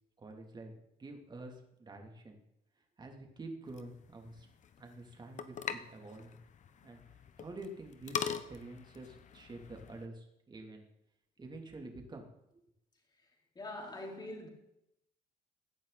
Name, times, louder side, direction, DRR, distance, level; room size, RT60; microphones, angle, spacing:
voice 1, 0.2-2.4 3.0-4.5 4.8-6.4 6.8-7.0 7.4-10.9 11.4-12.3 12.5-12.6, right 2 dB, 25° right, 2 dB, 3.1 m, -48 dB
sound 1, 3.6-10.0, left 7 dB, 45° left, 1.1 m, -43 dB
voice 2, 13.5-14.5, left 1 dB, 25° left, 0 dB, 4.3 m, -43 dB
17.0 x 11.5 x 4.3 m, 0.82 s
cardioid pair, 110°, 17 cm